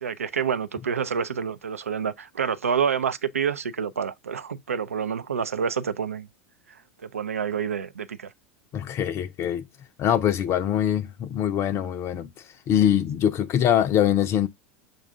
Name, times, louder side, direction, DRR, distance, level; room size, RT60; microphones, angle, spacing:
voice 1, 0.0-6.3 6.7-8.3, right 7 dB, 90° right, 0.4 m, -28 dB
voice 2, 8.7-9.7 10.0-14.5, left 10 dB, 40° left, 0.4 m, -23 dB
6.4 x 2.3 x 3.6 m
hypercardioid pair, 85°, 7 cm